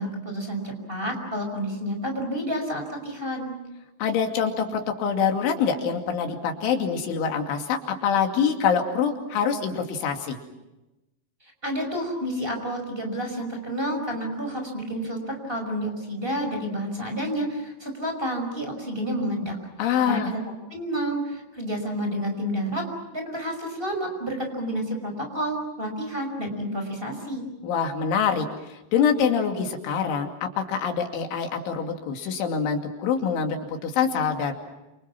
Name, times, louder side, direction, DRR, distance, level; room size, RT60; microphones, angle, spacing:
voice 1, 0.0-3.5 11.6-19.6 20.1-20.4 20.7-22.8 23.1-27.4, equal, 10° right, 4 dB, 5.3 m, -30 dB
voice 2, 4.0-10.4 19.8-20.3 27.6-34.5, left 7 dB, 80° left, 3 dB, 4.9 m, -25 dB
29.0 x 28.0 x 6.1 m, 0.99 s
omnidirectional pair, 5.4 m